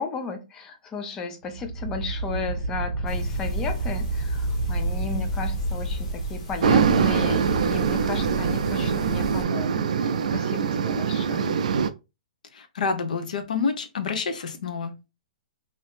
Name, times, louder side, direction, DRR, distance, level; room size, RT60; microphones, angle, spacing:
voice 1, 0.0-11.6, left 3 dB, 10° left, 7 dB, 0.3 m, -34 dB
sound 1, 1.4-6.3, right 2 dB, 85° right, 0.8 m, -29 dB
sound 2, 3.1-9.4, equal, 45° left, 1.3 m, -33 dB
sound 3, 6.6-11.9, right 6 dB, 60° right, 0.3 m, -23 dB
voice 2, 12.5-14.9, left 5 dB, 70° left, 9 dB, 0.7 m, -28 dB
2.7 x 2.6 x 3.4 m, 0.27 s
hypercardioid pair, 175°, 4 cm